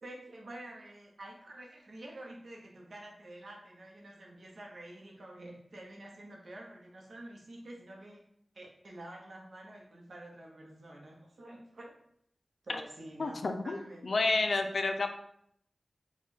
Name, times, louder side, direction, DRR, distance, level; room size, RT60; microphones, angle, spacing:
voice 1, 0.0-8.2 8.5-12.0 12.6-14.4, right 1 dB, 75° right, -1 dB, 1.0 m, -48 dB
voice 2, 13.2-13.8 14.0-15.1, left 3 dB, 70° left, 6 dB, 0.4 m, -30 dB
4.2 x 2.4 x 4.2 m, 0.69 s
wide cardioid pair, 65°, 0 cm